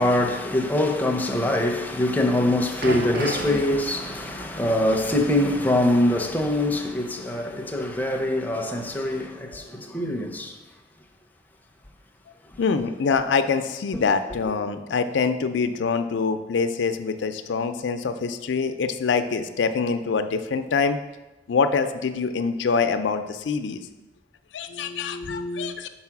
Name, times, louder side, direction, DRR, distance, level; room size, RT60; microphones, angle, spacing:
voice 1, 0.0-10.5, left 1 dB, 10° left, 0.5 m, -23 dB
sound 1, 2.8-7.1 7.3-7.5 8.3-8.4, right 2 dB, 60° right, 0.6 m, -36 dB
voice 2, 12.6-21.0 21.5-23.8 24.5-25.9, left 5 dB, 80° left, 0.4 m, -25 dB
4.8 x 4.2 x 5.8 m
head